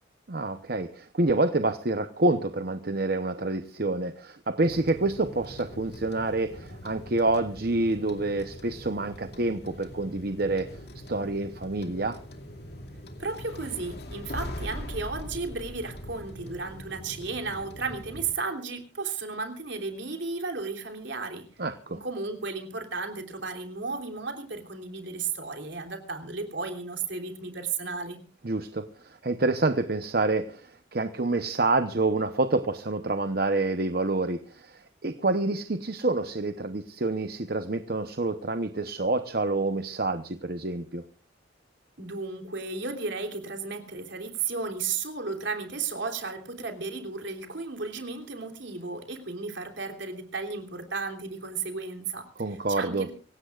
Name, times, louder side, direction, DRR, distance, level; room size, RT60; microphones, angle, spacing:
voice 1, 0.3-10.7 11.1-12.2 21.6-22.0 28.4-41.0 52.4-53.1, right 2 dB, 50° right, 9 dB, 0.9 m, -27 dB
sound 1, 4.6-18.3, equal, 55° left, 2.5 m, -42 dB
voice 2, 13.2-21.5 21.9-28.2 42.0-53.1, right 4 dB, 70° right, 4 dB, 3.3 m, -34 dB
25.5 x 17.0 x 2.5 m, 0.40 s
head